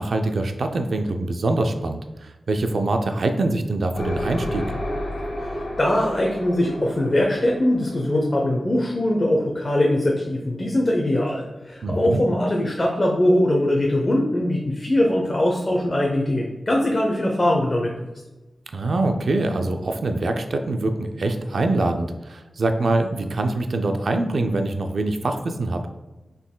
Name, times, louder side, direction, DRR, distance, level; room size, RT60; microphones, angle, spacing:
voice 1, 0.0-4.7 11.8-12.2 18.7-25.8, right 2 dB, 70° right, 5 dB, 0.4 m, -24 dB
sound 1, 3.9-9.6, left 1 dB, 80° left, 1.5 m, -32 dB
voice 2, 5.4-17.9, left 1 dB, 35° left, -1 dB, 0.7 m, -21 dB
6.0 x 3.9 x 2.2 m, 1.1 s
cardioid pair, 65°, 0 cm